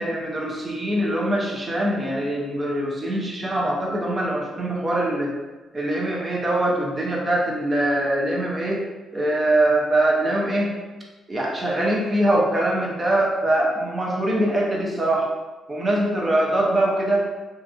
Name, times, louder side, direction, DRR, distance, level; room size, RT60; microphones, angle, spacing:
voice 1, 0.0-5.3 5.7-8.8 9.1-10.8 11.3-15.3 15.7-17.2, right 1 dB, 25° right, -2 dB, 0.6 m, -23 dB
2.8 x 2.4 x 2.5 m, 1.2 s
cardioid pair, 90°, 0 cm